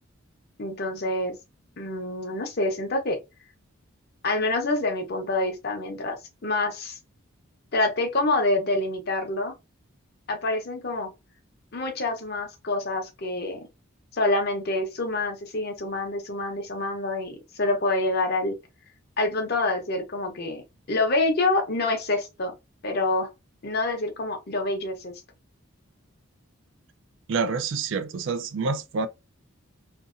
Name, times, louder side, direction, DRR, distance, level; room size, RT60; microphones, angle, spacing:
voice 1, 0.6-1.4 1.8-3.2 4.2-7.0 7.7-9.5 10.3-11.1 11.7-13.7 14.1-18.5 19.2-22.6 22.8-23.3 23.6-25.2, left 2 dB, 45° left, 0.7 m, -27 dB
voice 2, 27.3-29.1, right 4 dB, 60° right, 0.3 m, -27 dB
2.7 x 2.6 x 2.5 m
head